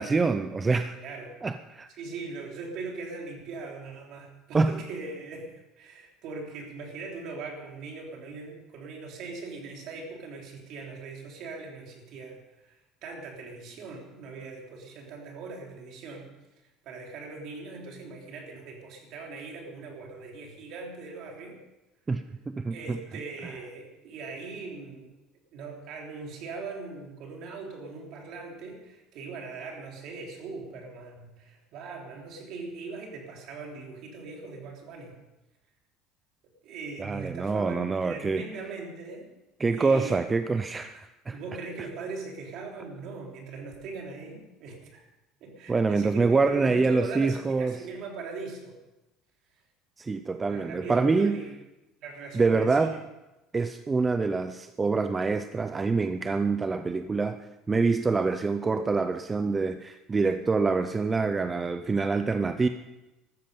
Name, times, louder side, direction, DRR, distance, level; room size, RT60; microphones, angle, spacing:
voice 1, 0.0-1.0 1.4-1.9 4.5-4.8 22.1-23.0 23.4-23.5 37.0-38.5 39.6-41.4 45.7-47.8 50.0-51.4 52.3-52.9 53.5-57.4 57.7-62.7, right 4 dB, 15° right, 10 dB, 0.5 m, -26 dB
voice 2, 1.0-1.3 2.0-16.3 16.8-21.6 22.7-25.1 25.5-35.2 36.6-39.3 39.7-40.2 41.3-45.0 45.4-48.8 50.4-51.5 52.0-53.0, right 4 dB, 50° right, 1 dB, 3.4 m, -40 dB
15.0 x 13.5 x 5.3 m, 1.0 s
cardioid pair, 155°, 0 cm